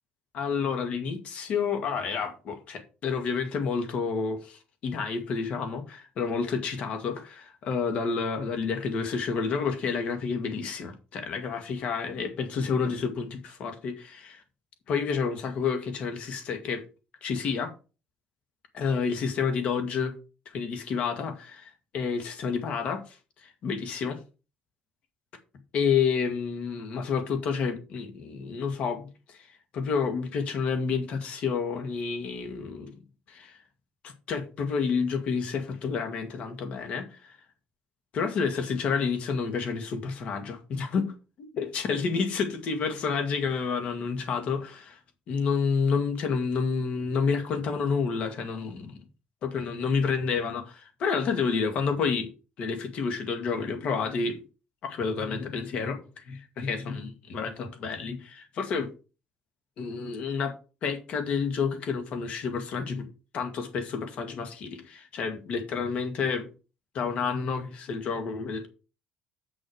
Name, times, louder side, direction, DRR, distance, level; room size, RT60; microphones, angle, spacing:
voice 1, 0.3-14.4 14.9-16.8 17.2-17.7 18.7-20.1 20.5-24.2 25.7-29.5 29.7-32.9 33.3-33.6 34.0-37.4 38.1-45.0 45.3-49.0 49.4-52.3 52.6-54.4 54.8-58.9 59.8-60.5 60.8-63.1 63.3-66.5 66.9-68.7, left 5 dB, 45° left, 2.0 m, -29 dB
8.1 x 6.2 x 4.8 m
cardioid pair, 180°, 3 cm